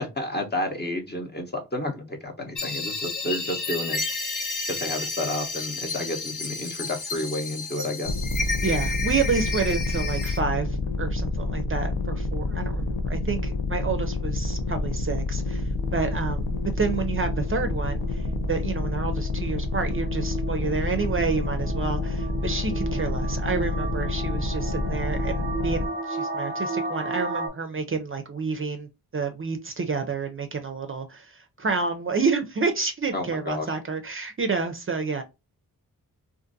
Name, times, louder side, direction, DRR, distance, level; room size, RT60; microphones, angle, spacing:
voice 1, 0.0-4.0 4.7-8.2 33.1-33.7, left 1 dB, 30° left, 0.8 m, -31 dB
sound 1, 2.5-10.4, left 4 dB, 60° left, 0.8 m, -31 dB
sound 2, 8.0-25.9, left 2 dB, 90° left, 0.5 m, -28 dB
voice 2, 8.6-35.2, right 4 dB, 40° right, 0.4 m, -29 dB
sound 3, 15.5-27.5, right 3 dB, 15° right, 1.0 m, -35 dB
2.5 x 2.5 x 2.5 m
wide cardioid pair, 80°, 35 cm